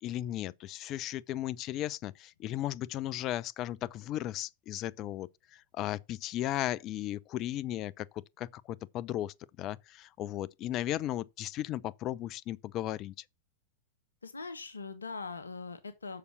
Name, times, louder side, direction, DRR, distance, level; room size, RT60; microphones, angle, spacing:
voice 1, 0.0-13.1, left 13 dB, 35° left, 0.5 m, -36 dB
voice 2, 14.2-16.2, left 4 dB, 75° left, 1.2 m, -41 dB
6.8 x 6.6 x 6.1 m
figure-of-eight pair, 90°, 0 cm